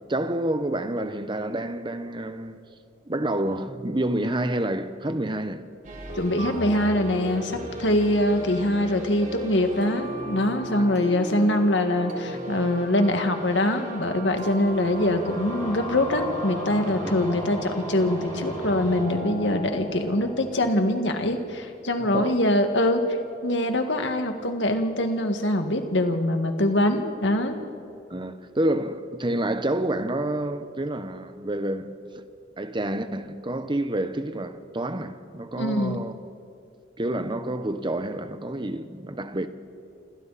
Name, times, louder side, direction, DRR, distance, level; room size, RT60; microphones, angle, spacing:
voice 1, 0.0-2.6 3.1-5.7 10.8-10.9 17.0-17.1 22.0-22.4 28.1-32.2 32.6-36.1 37.0-39.5, right 1 dB, 25° right, 1.0 m, -28 dB
sound 1, 5.8-20.7, right 1 dB, 45° right, 4.0 m, -37 dB
voice 2, 6.2-23.0 23.4-27.6 35.6-36.0, left 1 dB, 80° left, 2.0 m, -23 dB
sound 2, 13.9-21.4, left 1 dB, 20° left, 5.6 m, -37 dB
28.5 x 26.5 x 4.3 m
head